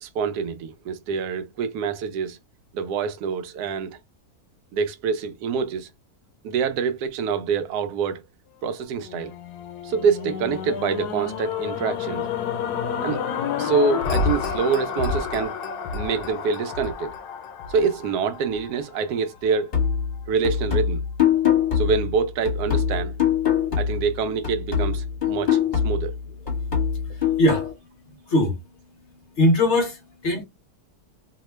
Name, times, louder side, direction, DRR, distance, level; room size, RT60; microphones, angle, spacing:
voice 1, 0.0-2.4 2.7-4.0 4.7-5.9 6.4-8.2 8.6-9.3 9.8-12.3 13.0-13.2 13.6-15.5 15.9-17.1 17.7-19.7 20.3-21.0 21.7-23.1 23.8-25.6 25.8-26.1, right 5 dB, 85° right, 1.1 m, -25 dB
sound 1, 9.0-19.3 19.8-19.9, left 6 dB, 90° left, 1.1 m, -29 dB
sound 2, 19.7-24.2 24.4-27.7, left 8 dB, 35° left, 1.2 m, -23 dB
voice 2, 29.4-30.4, left 1 dB, 60° left, 0.8 m, -20 dB
2.9 x 2.1 x 3.1 m
omnidirectional pair, 1.6 m